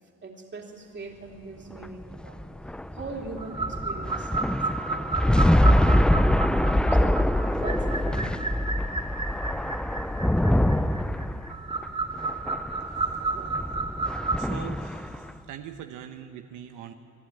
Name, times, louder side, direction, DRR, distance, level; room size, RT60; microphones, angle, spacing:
voice 1, 0.2-2.4 2.9-5.1 6.9-8.5 12.4-12.6 13.3-13.6, right 3 dB, 35° right, 1 dB, 3.2 m, -41 dB
sound 1, 1.7-15.3, left 1 dB, 5° left, 0.4 m, -24 dB
sound 2, 3.4-14.5, right 3 dB, 15° right, 2.5 m, -32 dB
voice 2, 12.9-13.4 14.0-14.1 14.4-16.9, right 9 dB, 90° right, 6 dB, 0.9 m, -42 dB
24.5 x 11.5 x 9.9 m, 2.8 s
cardioid pair, 90°, 30 cm